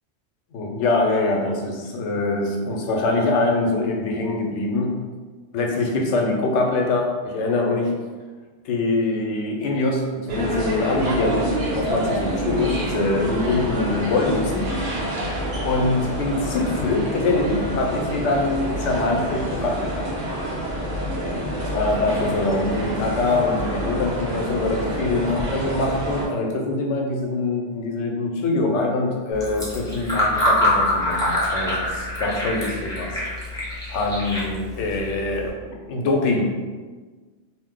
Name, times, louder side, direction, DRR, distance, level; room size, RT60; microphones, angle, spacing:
voice 1, 0.5-5.0 5.5-7.9 8.6-14.7 15.6-20.1 21.6-33.2 33.9-35.5 35.9-36.5, left 2 dB, 90° left, 0 dB, 0.9 m, -24 dB
sound 1, 10.3-26.3, right 1 dB, 70° right, 1.0 m, -27 dB
Fill (with liquid), 29.3-35.5, left 1 dB, 5° left, 0.7 m, -25 dB
2.6 x 2.0 x 3.6 m, 1.4 s
omnidirectional pair, 1.1 m